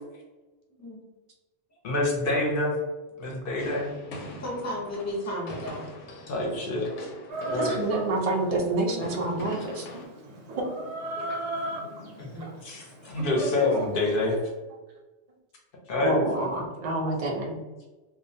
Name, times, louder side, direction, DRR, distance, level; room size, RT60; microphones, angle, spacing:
voice 1, 1.8-2.8 3.2-3.9 6.3-7.1 7.5-7.8 12.6-14.4 15.9-16.1, left 2 dB, 60° left, -1 dB, 0.7 m, -27 dB
sound 1, 3.6-10.1, left 1 dB, 85° left, 0.9 m, -42 dB
voice 2, 4.4-5.9 11.3-11.7 12.2-12.5, left 1 dB, 20° left, -4 dB, 0.5 m, -34 dB
Chicken rooster, 7.3-14.3, right 1 dB, 90° right, 0.9 m, -37 dB
voice 3, 7.4-9.9 11.2-11.4 13.3-13.4 16.0-17.5, right 2 dB, 60° right, -1 dB, 0.3 m, -28 dB
2.3 x 2.1 x 2.6 m, 1.2 s
omnidirectional pair, 1.2 m